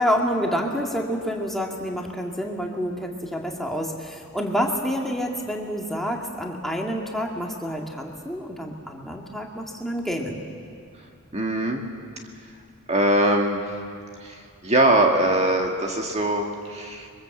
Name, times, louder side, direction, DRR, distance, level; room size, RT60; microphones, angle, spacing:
voice 1, 0.0-10.4, equal, ahead, 0 dB, 1.9 m, -28 dB
voice 2, 11.3-11.8 12.9-13.6 14.2-17.1, right 1 dB, 30° right, 2 dB, 1.8 m, -22 dB
27.0 x 23.0 x 7.8 m, 2.3 s
head